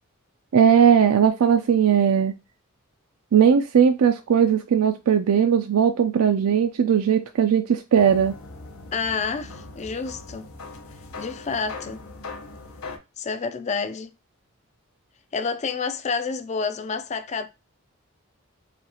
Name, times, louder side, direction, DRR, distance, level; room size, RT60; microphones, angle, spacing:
voice 1, 0.5-2.3 3.3-8.3, right 7 dB, 85° right, 0.4 m, -18 dB
sound 1, 8.0-13.0, left 3 dB, 75° left, 0.8 m, -40 dB
voice 2, 8.9-10.5 11.2-12.0 13.2-14.1 15.3-17.5, left 5 dB, 30° left, 0.4 m, -29 dB
5.0 x 2.4 x 2.9 m
head